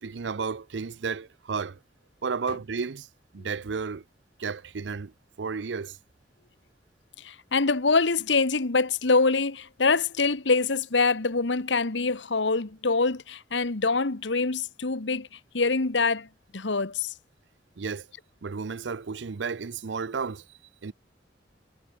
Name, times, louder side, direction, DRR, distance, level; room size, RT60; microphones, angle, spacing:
voice 1, 0.0-1.8 2.2-3.1 3.3-4.0 4.4-5.1 5.4-6.0 17.8-18.1 18.4-20.4 20.8-20.9, right 5 dB, 75° right, 0.6 m, -32 dB
voice 2, 7.2-15.3 15.5-16.3 16.5-17.1, left 4 dB, 90° left, 1.4 m, -25 dB
head